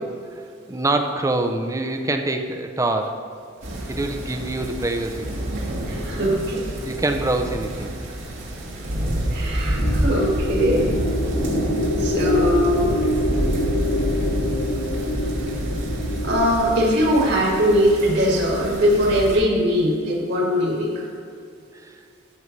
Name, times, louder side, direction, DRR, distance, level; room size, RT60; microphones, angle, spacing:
voice 1, 0.7-3.2 3.9-5.3 6.8-7.9 21.8-21.9, right 2 dB, 15° right, 5 dB, 0.6 m, -24 dB
sound 1, 3.6-19.4, equal, 80° right, 2.4 m, -28 dB
voice 2, 5.9-6.6 9.3-10.9 12.0-13.0 16.2-20.9, equal, 60° right, -2 dB, 2.2 m, -20 dB
sound 2, 9.6-18.0, left 1 dB, 75° left, 0.7 m, -27 dB
13.0 x 7.0 x 3.2 m, 2.3 s
head